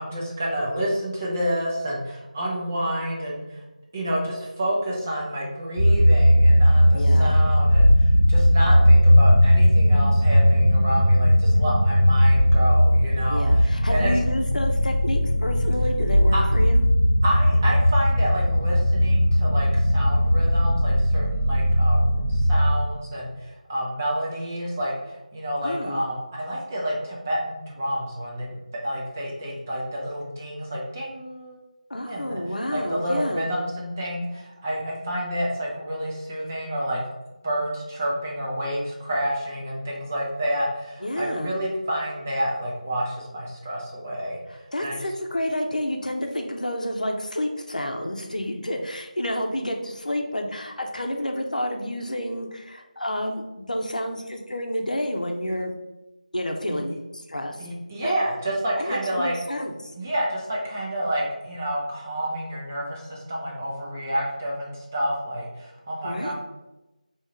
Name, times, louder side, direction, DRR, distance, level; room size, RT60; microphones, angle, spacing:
voice 1, 0.0-3.6 3.9-14.1 16.3-16.4 17.2-31.6 32.0-32.4 32.7-37.0 37.4-45.1 56.7-56.8 57.6-59.3 60.0-66.3, equal, 20° right, -4 dB, 0.7 m, -29 dB
sound 1, 5.8-22.7, equal, 25° left, 1.0 m, -18 dB
voice 2, 6.9-7.4 13.3-16.8 25.6-26.0 31.9-33.5 41.0-41.5 44.5-55.7 56.3-57.0 57.3-57.7 58.0-58.1 58.8-59.9 66.0-66.3, left 1 dB, 65° left, 3 dB, 0.7 m, -29 dB
3.6 x 3.0 x 4.3 m, 1.0 s
figure-of-eight pair, 165°, 4 cm